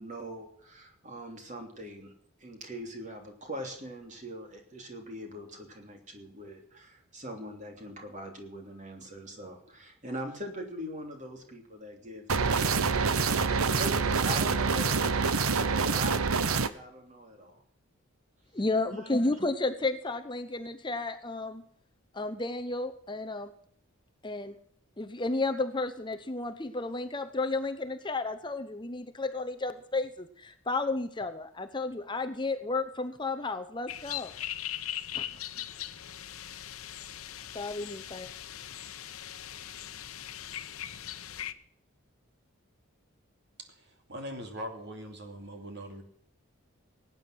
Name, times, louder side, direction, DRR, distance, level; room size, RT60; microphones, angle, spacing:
voice 1, 0.0-2.1 2.4-13.3 13.8-16.2 16.6-17.6 18.9-19.3, right 1 dB, 35° right, 3.1 m, -42 dB
sound 1, 12.3-16.7, right 5 dB, 80° right, 0.9 m, -26 dB
voice 2, 18.5-21.6 22.1-23.5 24.2-24.6 25.0-34.3 35.1-35.2 37.5-38.3, left 3 dB, 20° left, 0.7 m, -32 dB
sound 2, 33.9-41.5, left 11 dB, 80° left, 0.9 m, -40 dB
voice 3, 43.6-46.0, equal, 50° right, 2.6 m, -41 dB
18.5 x 9.3 x 6.1 m
head